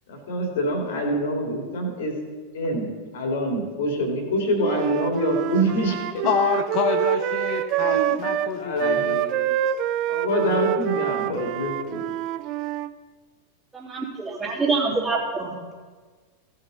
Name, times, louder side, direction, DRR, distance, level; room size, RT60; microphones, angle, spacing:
voice 1, 0.1-2.1 2.5-2.9 3.1-6.3 7.7-8.1 8.5-9.0 10.1-12.0, equal, 55° left, 2 dB, 2.5 m, -25 dB
Wind instrument woodwind instrument, 4.6-12.9, right 13 dB, 40° right, 0.4 m, -26 dB
voice 2, 6.2-9.8, left 8 dB, 40° left, 4 dB, 0.8 m, -27 dB
voice 3, 13.7-15.7, right 4 dB, 15° right, -6 dB, 3.4 m, -26 dB
16.5 x 6.6 x 4.1 m, 1.5 s
figure-of-eight pair, 90°, 0 cm